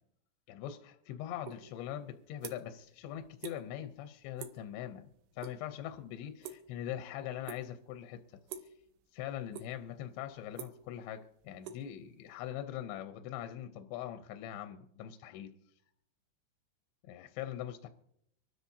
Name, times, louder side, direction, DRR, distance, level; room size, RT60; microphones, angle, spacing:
voice 1, 0.5-5.1 5.4-8.2 9.1-15.5 17.1-17.9, left 11 dB, 80° left, 8 dB, 2.7 m, -42 dB
sound 1, 1.4-1.6 2.0-2.8 3.1-3.6 3.9-4.1 4.4-4.7 5.0-5.6 5.8-7.0 7.4-7.9 8.5-8.8 9.2-9.9 10.2-12.5, right 7 dB, 75° right, 2.5 m, -46 dB
25.5 x 13.0 x 2.7 m, 0.74 s
omnidirectional pair, 5.7 m